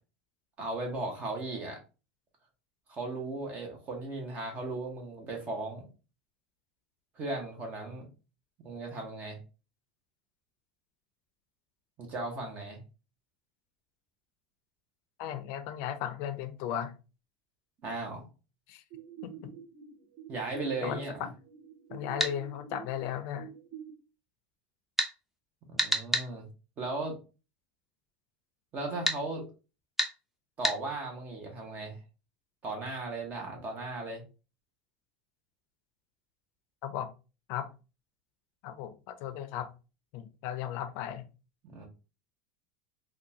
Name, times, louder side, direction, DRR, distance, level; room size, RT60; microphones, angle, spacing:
voice 1, 0.6-1.8 2.9-5.9 7.2-8.0 8.6-9.4 12.0-12.8 17.8-18.3 20.3-21.2 25.7-26.5 26.8-27.1 28.7-29.5 30.6-32.0 32.6-34.2 41.6-41.9, right 2 dB, 35° right, 1 dB, 1.0 m, -36 dB
voice 2, 15.2-16.9 18.7-18.8 19.2-19.4 20.8-21.3 21.9-23.5 36.8-37.1 37.5-37.7 38.6-39.7 40.1-41.3, left 10 dB, 60° left, 9 dB, 0.5 m, -36 dB
sound 1, 18.9-23.9, right 8 dB, 60° right, 1.6 m, -48 dB
sound 2, 22.2-22.4 25.0-25.1 25.8-26.3 29.1-29.2 30.0-30.1 30.6-30.8, equal, 5° right, 0.6 m, -28 dB
3.6 x 2.3 x 2.7 m, 0.32 s
supercardioid pair, 120°, 4 cm